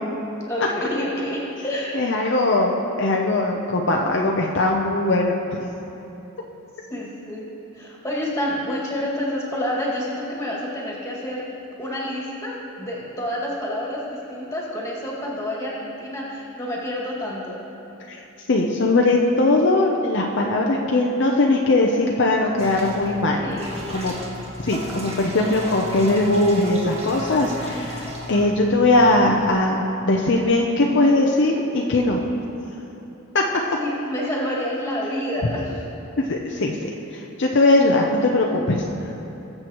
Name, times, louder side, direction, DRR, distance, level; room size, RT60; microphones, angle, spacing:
voice 1, 0.5-2.0 6.9-7.5 7.7-11.5 11.8-17.6 23.4-23.8 33.8-35.8, left 1 dB, 15° left, -5 dB, 2.0 m, -28 dB
voice 2, 1.9-5.7 18.1-18.2 18.5-23.4 23.9-24.1 24.6-32.2 33.3-33.4 36.3-38.8, left 2 dB, 55° left, 0 dB, 0.6 m, -20 dB
sound 1, 22.6-29.5, equal, 30° right, 1.7 m, -35 dB
20.5 x 7.6 x 3.0 m, 2.9 s
head